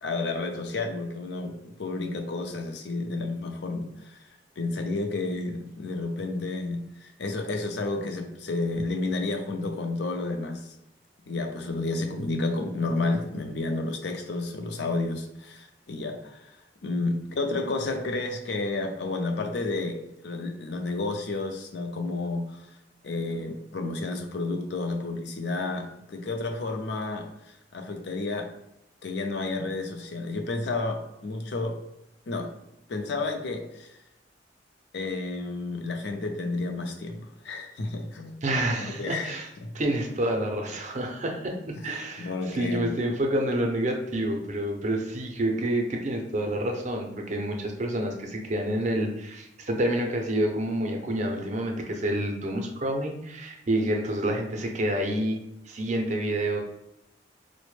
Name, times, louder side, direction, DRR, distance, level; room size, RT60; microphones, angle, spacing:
voice 1, 0.0-4.2 4.6-10.7 11.3-22.7 23.0-28.5 29.0-31.8 32.3-32.5 32.9-34.0 34.9-38.4 38.8-39.7 42.2-42.9, left 3 dB, 65° left, 4 dB, 0.5 m, -31 dB
voice 2, 38.4-39.5 39.7-56.6, right 1 dB, 40° right, 2 dB, 0.5 m, -28 dB
4.1 x 2.1 x 3.1 m, 0.85 s
head